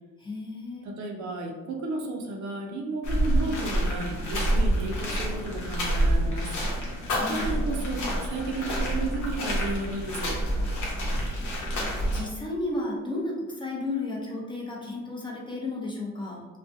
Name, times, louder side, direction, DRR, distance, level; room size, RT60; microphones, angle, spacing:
voice 1, 0.2-0.8 7.2-7.5 12.1-16.5, left 2 dB, 15° left, -3 dB, 0.6 m, -33 dB
voice 2, 0.8-6.5 7.3-10.4, right 2 dB, 70° right, 1 dB, 0.6 m, -33 dB
sound 1, 3.0-12.2, right 1 dB, 75° left, 0.8 m, -27 dB
2.4 x 2.2 x 2.5 m, 1.2 s
cardioid pair, 90°, 30 cm